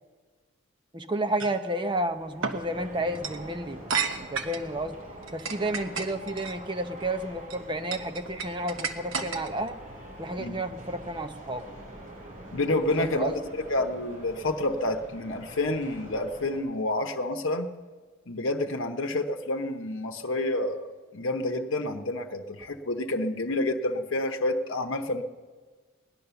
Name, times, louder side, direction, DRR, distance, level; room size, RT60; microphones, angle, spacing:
voice 1, 0.9-3.8 4.2-5.0 5.3-9.8 10.2-11.6 13.0-13.4, right 1 dB, 20° right, 8 dB, 0.8 m, -31 dB
sound 1, 1.4-1.6 2.4-2.6 3.1-3.4 3.9-4.7 5.2-6.5 7.2-7.6 7.9-9.7, right 5 dB, 70° right, 1.1 m, -31 dB
sound 2, 2.1-16.6, right 1 dB, 40° right, 4.0 m, -45 dB
voice 2, 12.5-17.7 18.3-25.2, left 2 dB, 65° left, 4 dB, 0.9 m, -29 dB
18.0 x 10.5 x 6.9 m, 1.4 s
head